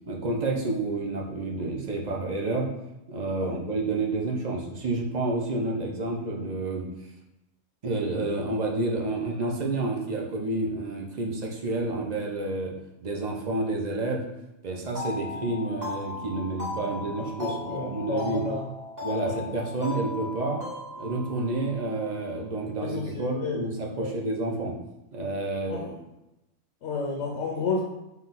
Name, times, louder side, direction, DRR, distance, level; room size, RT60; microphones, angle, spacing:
voice 1, 0.1-2.7 3.1-6.9 7.8-12.7 13.0-14.2 14.6-18.4 19.0-20.6 21.0-24.8 25.1-26.0, right 2 dB, 45° right, -1 dB, 0.6 m, -29 dB
sound 1, 14.9-22.4, left 3 dB, 15° right, 1.3 m, -38 dB
voice 2, 16.8-18.7 19.2-19.4 22.8-23.7 24.0-24.1 25.7-25.8 26.8-27.8, left 4 dB, 75° left, -1 dB, 0.9 m, -32 dB
4.0 x 2.3 x 3.9 m, 0.93 s
omnidirectional pair, 1.2 m